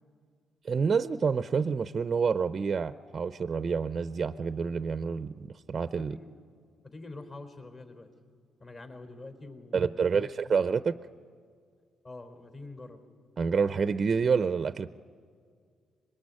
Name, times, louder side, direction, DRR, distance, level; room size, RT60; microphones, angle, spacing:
voice 1, 0.6-6.2 9.7-10.9 13.4-14.9, right 5 dB, 40° right, 13 dB, 0.6 m, -28 dB
voice 2, 6.0-6.4 6.8-8.1 8.6-10.3 12.0-13.0, left 2 dB, 40° left, 6 dB, 4.0 m, -45 dB
25.0 x 21.5 x 9.7 m, 2.1 s
cardioid pair, 90°, 0 cm